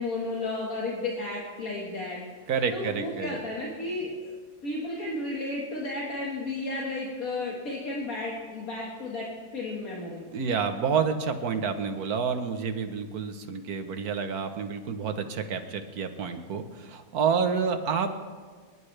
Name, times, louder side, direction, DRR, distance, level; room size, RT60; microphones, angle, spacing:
voice 1, 0.0-2.2 2.7-4.3 4.6-10.2, left 2 dB, 70° left, -4 dB, 2.2 m, -33 dB
voice 2, 2.5-3.4 10.3-18.1, right 6 dB, 90° right, 7 dB, 1.5 m, -29 dB
25.5 x 11.0 x 3.3 m, 1.5 s
omnidirectional pair, 1.5 m